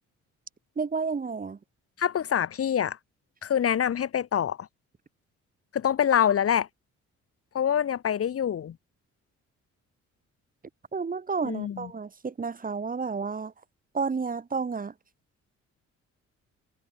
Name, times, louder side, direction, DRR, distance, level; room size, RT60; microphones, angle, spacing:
voice 1, 0.8-1.6 10.9-13.5 13.9-14.9, right 5 dB, 30° right, 1.3 m, -31 dB
voice 2, 2.0-3.0 3.4-4.7 5.7-6.7 7.5-8.8 11.4-11.9, left 9 dB, 50° left, 1.2 m, -25 dB
cardioid pair, 90°, 30 cm